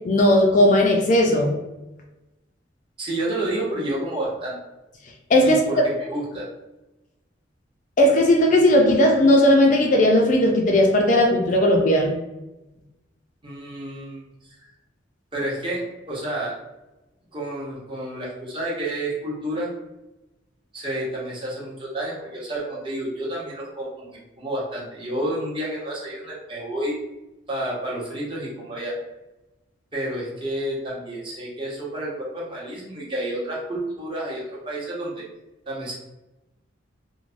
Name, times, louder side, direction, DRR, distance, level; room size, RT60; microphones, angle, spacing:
voice 1, 0.0-1.5 5.3-5.6 8.0-12.1, left 1 dB, 40° left, 2 dB, 0.4 m, -17 dB
voice 2, 3.0-4.6 5.4-6.5 13.4-14.2 15.3-16.6 17.3-19.7 20.7-27.0 27.5-29.0 29.9-35.2 35.7-35.9, right 1 dB, 25° right, -5 dB, 0.8 m, -30 dB
3.1 x 2.1 x 2.5 m, 1.0 s
head